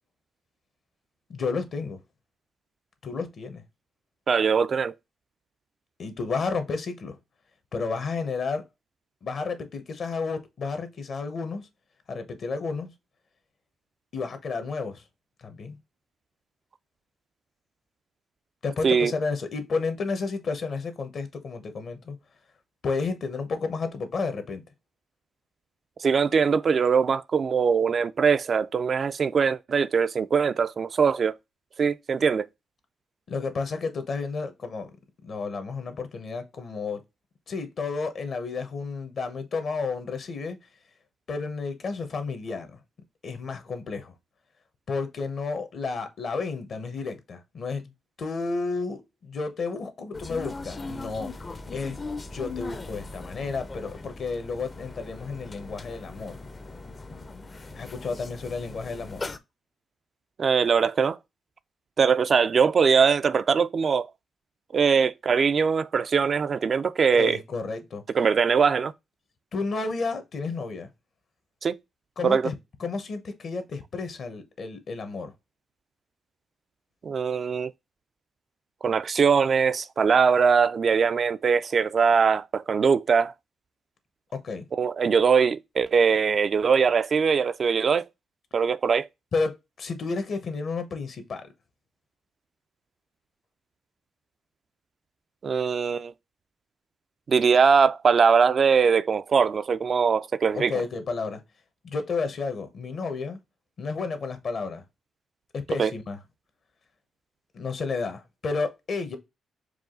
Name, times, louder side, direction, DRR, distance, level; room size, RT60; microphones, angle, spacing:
voice 1, 1.3-2.0 3.0-3.6 6.0-7.2 7.7-8.6 9.2-11.6 12.1-12.9 14.1-15.0 15.4-15.8 18.6-22.2 22.8-24.6 33.3-34.9 35.2-37.0 37.5-40.6 41.3-42.8 43.2-44.1 44.9-47.9 48.2-51.3 51.7-52.0 52.3-56.4 57.7-59.2 67.1-68.0 69.5-70.9 72.2-72.5 72.8-75.3 84.3-84.6 89.3-91.5 100.5-101.4 101.8-103.4 103.8-104.8 105.5-106.2 107.5-109.2, left 4 dB, 60° left, 1.0 m, -31 dB
voice 2, 4.3-4.9 18.8-19.1 26.0-31.3 31.8-32.5 60.4-61.2 62.0-64.1 64.7-67.4 68.1-68.9 71.6-71.8 72.2-72.5 77.0-77.7 78.8-83.3 84.7-88.0 88.5-89.1 95.4-96.1 97.3-100.7 105.8-105.9, right 6 dB, 50° right, 0.3 m, -22 dB
sound 1, 50.1-59.4, left 3 dB, 35° left, 0.5 m, -39 dB
4.8 x 2.4 x 3.7 m
cardioid pair, 65°, 0 cm